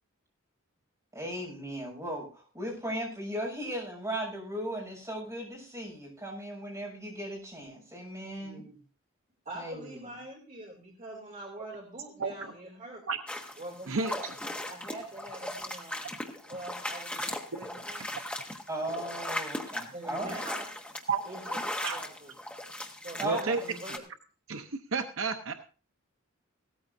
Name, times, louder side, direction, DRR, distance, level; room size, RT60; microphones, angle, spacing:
voice 1, 1.1-8.6 9.5-10.2 18.7-20.4 23.2-23.6, right 1 dB, 15° right, -3 dB, 6.6 m, -37 dB
voice 2, 8.4-8.8 9.4-13.0 13.6-14.3 14.6-16.1 16.5-18.2 19.9-20.7 21.2-22.3 23.0-24.0 24.6-24.7, right 2 dB, 35° right, -2 dB, 2.8 m, -44 dB
voice 3, 12.2-12.5 13.1-13.2 13.9-14.1 21.1-21.2 21.8-22.0 23.2-23.6 24.5-25.5, right 4 dB, 65° right, 6 dB, 0.8 m, -31 dB
sound 1, 13.3-24.0, left 1 dB, 5° left, 1.3 m, -38 dB
17.0 x 14.0 x 2.7 m, 0.37 s
head